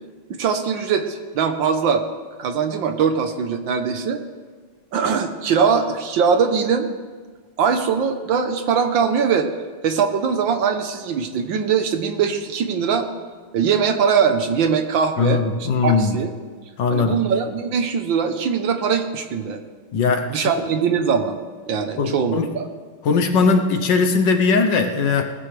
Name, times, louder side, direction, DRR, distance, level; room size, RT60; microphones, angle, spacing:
voice 1, 0.4-2.0 2.4-4.2 4.9-6.9 7.6-9.5 9.8-13.1 13.5-16.3 16.9-19.6 20.3-21.4 21.7-22.7, right 6 dB, 65° right, 7 dB, 1.5 m, -21 dB
voice 2, 15.2-16.2 16.8-17.2 19.9-20.5 22.0-22.5 23.0-25.2, left 4 dB, 65° left, 5 dB, 1.4 m, -19 dB
18.5 x 15.0 x 3.3 m, 1.5 s
omnidirectional pair, 2.4 m